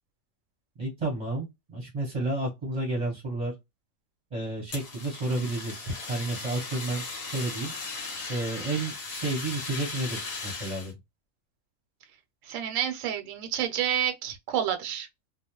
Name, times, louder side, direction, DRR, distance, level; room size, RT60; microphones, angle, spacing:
voice 1, 0.8-3.5 4.3-7.7 8.3-10.9, right 2 dB, 30° right, 0.7 m, -31 dB
Fire, 4.7-10.9, left 3 dB, 55° left, 0.9 m, -37 dB
voice 2, 12.4-15.1, right 10 dB, 75° right, 0.9 m, -29 dB
2.3 x 2.1 x 2.9 m
omnidirectional pair, 1.4 m